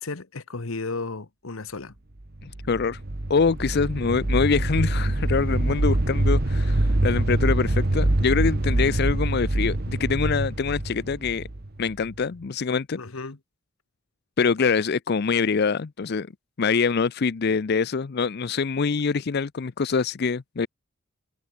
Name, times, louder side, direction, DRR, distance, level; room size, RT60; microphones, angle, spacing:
voice 1, 0.0-1.9 13.0-13.4, left 3 dB, 90° left, 1.3 m, -34 dB
Bass Rumbler, 2.3-12.2, right 1 dB, 50° right, 1.3 m, -24 dB
voice 2, 2.4-3.0 3.3-11.5 11.8-13.0 14.4-16.3 16.6-20.7, left 5 dB, 50° left, 0.5 m, -24 dB
head